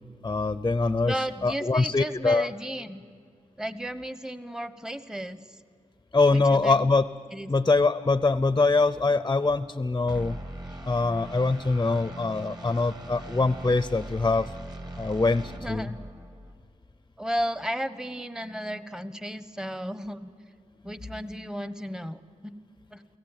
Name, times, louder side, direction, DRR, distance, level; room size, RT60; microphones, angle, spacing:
voice 1, 0.2-2.5 6.1-7.1 7.5-10.4 10.8-14.5 15.0-15.9, left 3 dB, 25° left, 13 dB, 0.7 m, -23 dB
voice 2, 1.0-3.0 3.6-5.6 6.3-6.8 7.3-7.5 15.6-16.0 17.2-20.3 20.8-22.5 22.9-23.0, equal, 5° right, 12 dB, 1.1 m, -34 dB
sound 1, 10.1-16.6, right 1 dB, 35° right, 2.5 m, -40 dB
29.0 x 18.0 x 9.1 m, 2.3 s
wide cardioid pair, 80°, 13 cm